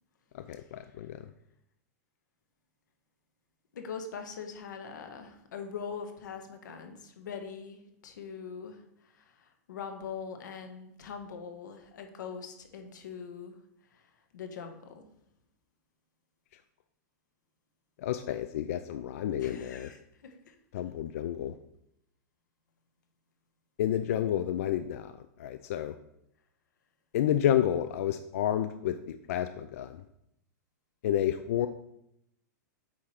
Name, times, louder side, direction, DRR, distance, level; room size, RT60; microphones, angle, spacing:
voice 1, 0.3-1.3 18.0-19.9 20.7-21.6 23.8-25.1 25.4-26.0 27.1-30.0 31.0-31.7, left 11 dB, 50° left, 10 dB, 0.4 m, -30 dB
voice 2, 3.7-13.5 13.9-15.1 19.4-20.5, left 6 dB, 85° left, 5 dB, 1.3 m, -42 dB
8.5 x 3.2 x 5.7 m, 0.79 s
supercardioid pair, 170°, 10 cm